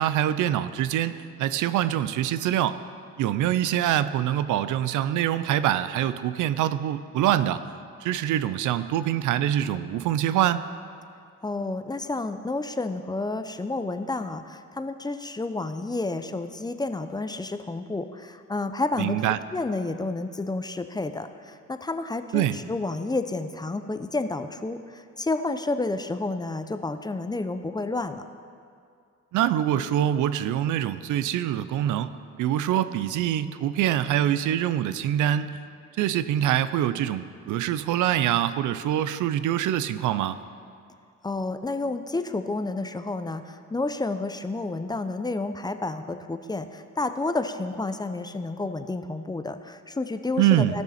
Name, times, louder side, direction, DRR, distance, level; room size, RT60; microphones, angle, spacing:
voice 1, 0.0-2.8 3.2-7.6 8.0-10.6 19.0-19.4 22.3-22.6 29.3-32.1 32.4-35.5 36.0-40.4 50.4-50.8, right 11 dB, 80° right, 14 dB, 0.5 m, -24 dB
voice 2, 11.4-28.2 41.2-50.8, left 2 dB, 15° left, 9 dB, 0.5 m, -30 dB
17.0 x 6.3 x 4.3 m, 2.3 s
cardioid pair, 90°, 30 cm